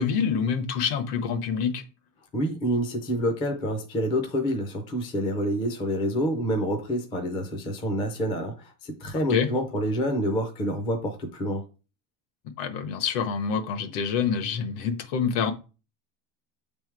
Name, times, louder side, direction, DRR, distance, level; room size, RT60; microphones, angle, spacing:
voice 1, 0.0-1.8 9.3-9.5 12.6-15.5, left 6 dB, 70° left, 1.2 m, -26 dB
voice 2, 2.3-11.6, equal, 10° left, 0.4 m, -27 dB
7.4 x 3.5 x 4.6 m
cardioid pair, 175°, 49 cm